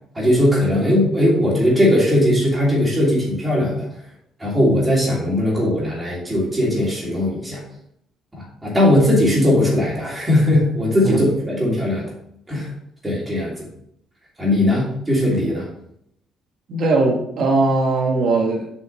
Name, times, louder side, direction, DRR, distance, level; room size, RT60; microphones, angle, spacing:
voice 1, 0.1-3.9 4.4-7.6 8.3-12.1 12.5-12.7 13.0-13.7 14.4-15.7, left 1 dB, 10° right, -4 dB, 2.9 m, -19 dB
voice 2, 16.7-18.7, right 3 dB, 50° right, 1 dB, 1.6 m, -19 dB
7.3 x 5.6 x 4.2 m, 0.73 s
cardioid pair, 160°, 0 cm